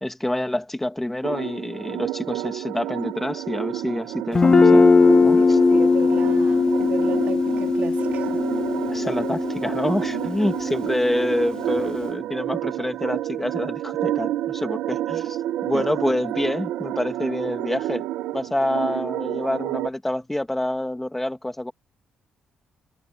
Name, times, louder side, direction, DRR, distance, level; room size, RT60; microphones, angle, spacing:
voice 1, 0.0-4.9 5.2-5.6 8.9-18.0 18.3-21.7, left 1 dB, 10° left, 2.3 m, -27 dB
sound 1, 1.2-19.9, right 13 dB, 85° right, 1.1 m, -29 dB
Guitar, 4.3-12.0, left 4 dB, 30° left, 0.4 m, -20 dB
voice 2, 5.3-8.4 15.7-15.9, right 9 dB, 70° right, 3.2 m, -35 dB
cardioid pair, 70°, 2 cm